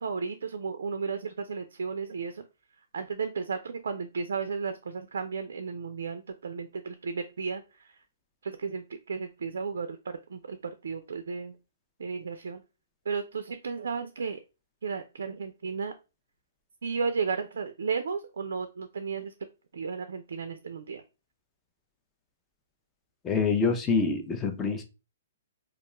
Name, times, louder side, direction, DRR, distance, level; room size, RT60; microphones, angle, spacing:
voice 1, 0.0-2.4 2.9-8.0 8.4-11.6 12.0-12.6 13.1-14.4 14.8-15.9 16.8-19.3 19.7-21.0, right 5 dB, 80° right, 8 dB, 0.3 m, -34 dB
voice 2, 23.2-24.8, left 5 dB, 15° left, 5 dB, 0.4 m, -26 dB
2.3 x 2.2 x 2.9 m, 0.29 s
hypercardioid pair, 145°, 0 cm